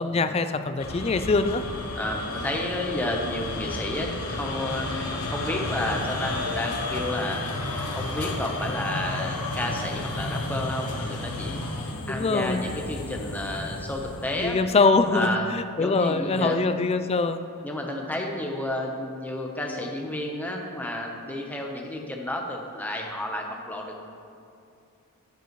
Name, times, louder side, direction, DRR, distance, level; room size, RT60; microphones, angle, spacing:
voice 1, 0.0-1.6 11.9-12.6 14.4-17.4, left 3 dB, 25° left, 10 dB, 0.4 m, -23 dB
sound 1, 0.8-14.6, left 2 dB, 85° left, 1.1 m, -32 dB
voice 2, 1.9-7.4 7.9-11.8 12.1-14.6 15.1-15.5 15.8-16.6 17.6-24.0, left 1 dB, 5° left, 0 dB, 0.9 m, -31 dB
10.0 x 9.3 x 3.1 m, 2.6 s
head